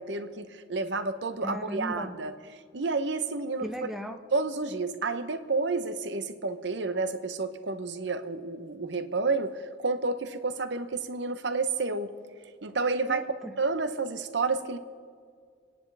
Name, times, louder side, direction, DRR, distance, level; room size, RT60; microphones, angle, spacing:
voice 1, 0.0-2.3 2.7-3.7 4.3-12.1 12.6-13.2 13.6-14.8, right 3 dB, 65° right, 10 dB, 0.8 m, -30 dB
voice 2, 1.4-2.2 3.6-4.2 13.1-13.5, equal, ahead, 5 dB, 0.6 m, -37 dB
28.0 x 10.0 x 3.4 m, 2.1 s
head